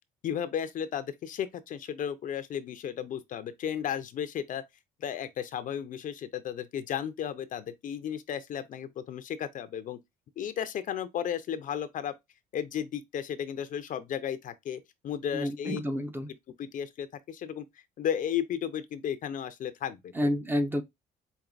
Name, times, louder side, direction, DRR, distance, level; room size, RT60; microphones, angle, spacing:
voice 1, 0.2-4.6 5.0-10.0 10.4-12.1 12.5-15.8 16.6-17.7 18.0-20.3, left 9 dB, 50° left, 0.6 m, -34 dB
voice 2, 15.3-16.3 20.1-20.8, equal, 10° right, 0.6 m, -29 dB
5.1 x 2.6 x 2.4 m
cardioid pair, 110°, 17 cm